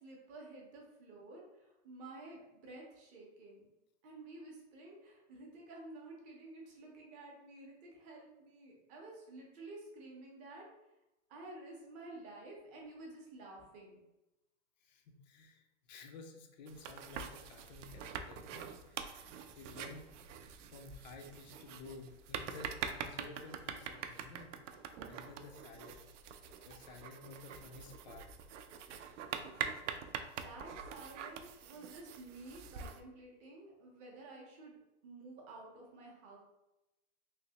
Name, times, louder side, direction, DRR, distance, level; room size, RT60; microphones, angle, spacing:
voice 1, 0.0-3.7 4.0-10.7 11.3-14.0 30.4-34.7 35.0-36.4, right 2 dB, 20° right, -1 dB, 0.6 m, -52 dB
voice 2, 14.8-20.1 20.7-26.1 26.7-28.3, left 3 dB, 40° left, 5 dB, 0.4 m, -53 dB
sound 1, 16.7-33.0, right 7 dB, 70° right, 0.5 m, -45 dB
3.2 x 2.9 x 2.8 m, 0.95 s
supercardioid pair, 160°, 37 cm